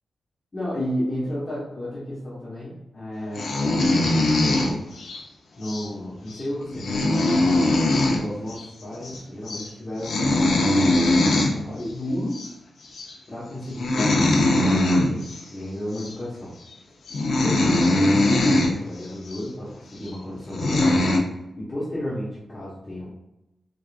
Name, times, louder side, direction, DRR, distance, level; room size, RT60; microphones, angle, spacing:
voice 1, 0.5-3.5 3.8-5.1 5.5-7.3 8.0-10.7 11.0-12.4 13.3-16.5 17.4-18.3 18.6-21.1 21.6-23.1, left 1 dB, 25° left, -9 dB, 1.0 m, -33 dB
sound 1, 3.3-5.2 5.6-5.9 6.3-6.4 6.7-8.2 8.5-8.6 8.9-9.2 9.5-9.7 10.0-11.5 12.3-12.5 12.9-13.2 13.7-15.4 15.9-16.1 16.7-16.8 17.1-18.7 19.3-19.4 20.1-20.2 20.5-21.2, left 1 dB, 65° left, 0.6 m, -21 dB
3.7 x 3.6 x 2.4 m, 0.91 s
wide cardioid pair, 170°, 0 cm